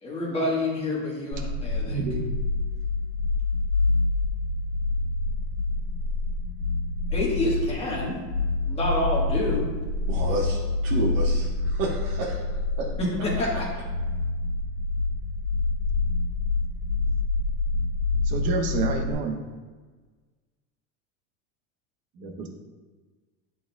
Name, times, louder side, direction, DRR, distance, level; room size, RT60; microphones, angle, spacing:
voice 1, 0.0-2.0 7.1-8.2 8.6-9.7 13.0-13.7, left 1 dB, 15° left, -4 dB, 1.3 m, -28 dB
sound 1, 1.3-19.1, left 3 dB, 60° left, 1.8 m, -27 dB
voice 2, 1.8-2.3 18.3-19.4 22.2-22.5, right 4 dB, 20° right, 4 dB, 0.3 m, -29 dB
voice 3, 10.1-10.6 10.8-12.4 12.8-12.9, right 2 dB, 80° right, -5 dB, 1.4 m, -30 dB
10.5 x 4.3 x 2.3 m, 1.4 s
cardioid pair, 180°, 39 cm